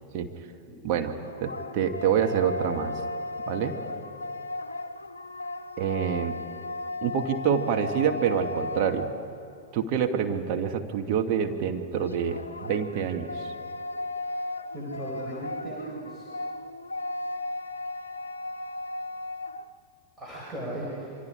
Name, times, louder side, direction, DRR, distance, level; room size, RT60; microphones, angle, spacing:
voice 1, 0.8-3.0 3.5-3.8 5.8-6.4 7.0-9.1 9.7-13.5, right 8 dB, 45° right, 5 dB, 1.6 m, -27 dB
sound 1, 0.9-9.7 12.0-19.7, left 2 dB, 75° left, 0.6 m, -36 dB
voice 2, 14.7-16.3 20.2-21.1, right 1 dB, 15° right, -5 dB, 5.1 m, -37 dB
27.5 x 24.0 x 5.0 m, 2.6 s
figure-of-eight pair, 90°, 0 cm